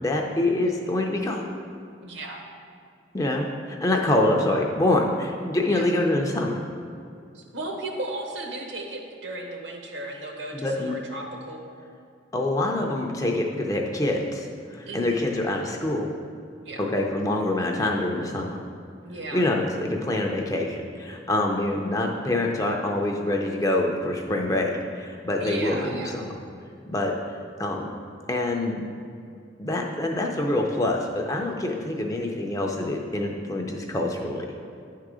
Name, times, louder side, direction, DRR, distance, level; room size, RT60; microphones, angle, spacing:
voice 1, 0.0-1.4 3.1-6.6 10.5-11.0 12.3-16.1 16.8-18.6 19.3-26.3 26.9-27.2 27.6-27.9 28.3-28.8 29.6-34.5, left 1 dB, 15° left, 1 dB, 0.5 m, -25 dB
voice 2, 2.0-2.4 5.7-5.9 7.3-11.6 14.9-15.2 16.6-16.9 19.0-19.5 25.4-26.1, right 2 dB, 65° right, 1 dB, 1.0 m, -35 dB
9.9 x 3.7 x 4.8 m, 2.4 s
head